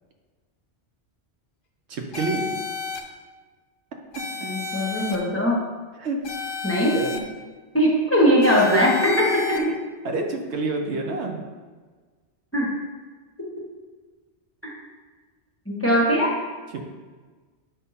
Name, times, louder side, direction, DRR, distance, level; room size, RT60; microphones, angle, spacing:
voice 1, 1.9-2.5 6.0-6.2 6.9-7.2 8.7-8.8 9.6-9.8 10.0-11.4 16.7-16.8, right 3 dB, 70° right, 2 dB, 1.0 m, -27 dB
sound 1, 2.1-3.0 4.1-5.2 6.2-7.2 8.4-9.6, left 5 dB, 50° left, 0.8 m, -32 dB
voice 2, 4.4-5.6 6.6-7.0 7.7-9.1 12.5-12.7 15.7-16.3, equal, 10° left, -4 dB, 1.1 m, -20 dB
7.5 x 2.7 x 5.6 m, 1.4 s
omnidirectional pair, 1.2 m